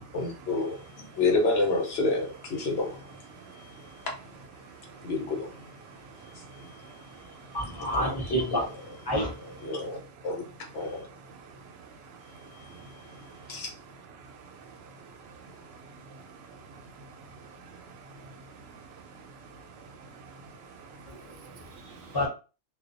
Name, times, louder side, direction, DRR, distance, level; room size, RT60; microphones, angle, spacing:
voice 1, 0.0-3.1 3.6-3.7 5.0-5.5 8.0-8.2 9.6-10.0 10.2-10.4 10.7-11.1 13.5-13.7, left 3 dB, 80° left, 1.0 m, -28 dB
voice 2, 3.3-4.1 4.6-5.1 5.8-7.8 11.3-13.6 14.2-22.2, right 4 dB, 80° right, 0.8 m, -49 dB
voice 3, 7.5-8.7 9.1-9.3 21.1-21.2 22.1-22.3, equal, 25° left, 0.8 m, -28 dB
2.4 x 2.2 x 2.5 m
omnidirectional pair, 1.0 m